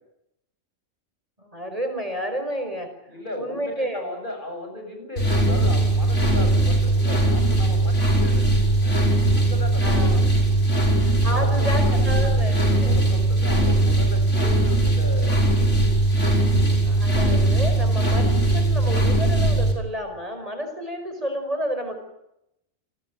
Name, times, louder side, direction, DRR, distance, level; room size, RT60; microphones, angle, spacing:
voice 1, 1.4-2.9 3.4-4.0 9.8-10.2 11.0-12.9 16.9-21.9, equal, 30° right, 6 dB, 5.5 m, -30 dB
voice 2, 3.1-9.1 9.4-10.3 11.3-15.9, left 1 dB, 40° left, 4 dB, 8.0 m, -36 dB
sound 1, 5.2-19.7, right 2 dB, 75° left, 5.5 m, -20 dB
30.0 x 19.5 x 9.4 m, 0.83 s
omnidirectional pair, 1.3 m